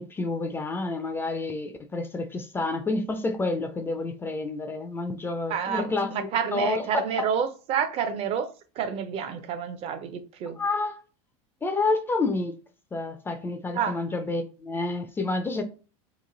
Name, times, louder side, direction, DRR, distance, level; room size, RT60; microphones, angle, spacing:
voice 1, 0.0-7.0 10.5-11.0 11.6-12.6 12.9-15.6, left 3 dB, 15° left, 0.4 m, -29 dB
voice 2, 5.5-8.5 8.8-10.6 13.7-14.0, right 7 dB, 40° right, 0.5 m, -29 dB
3.0 x 2.5 x 3.7 m
supercardioid pair, 125°, 16 cm